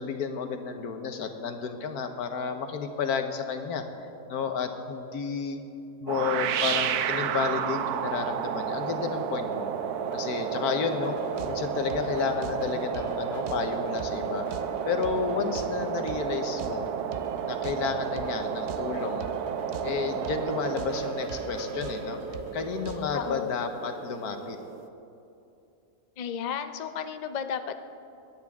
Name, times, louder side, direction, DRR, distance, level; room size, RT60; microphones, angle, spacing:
voice 1, 0.0-3.8 4.3-5.6 6.0-9.7 10.1-11.2 11.5-14.5 14.8-16.9 17.4-19.3 19.8-22.2 22.5-24.6, left 6 dB, 90° left, 6 dB, 1.5 m, -31 dB
sound 1, 6.1-24.9, right 9 dB, 85° right, 1.2 m, -32 dB
sound 2, 8.0-24.7, right 1 dB, 35° right, 2.4 m, -43 dB
sound 3, 11.2-23.4, right 5 dB, 55° right, 0.7 m, -44 dB
voice 2, 23.1-23.5 26.2-27.8, left 7 dB, 60° left, 9 dB, 0.4 m, -33 dB
23.0 x 10.0 x 3.6 m, 2.8 s
omnidirectional pair, 1.6 m